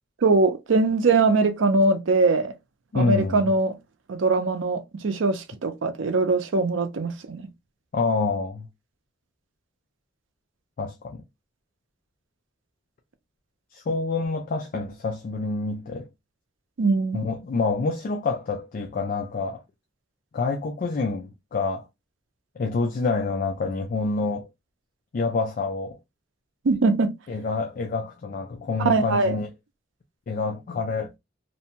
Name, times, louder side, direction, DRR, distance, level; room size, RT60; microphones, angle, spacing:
voice 1, 0.2-2.5 2.9-3.7 4.1-7.4 16.8-17.2 26.6-27.1 28.8-29.4, right 3 dB, 80° right, 0.5 m, -22 dB
voice 2, 2.9-3.5 7.9-8.7 10.8-11.2 13.7-16.1 17.1-19.6 20.3-21.8 22.6-24.5 25.1-26.0 27.3-29.5 30.3-31.1, left 3 dB, 45° left, 0.3 m, -27 dB
2.6 x 2.2 x 2.7 m
head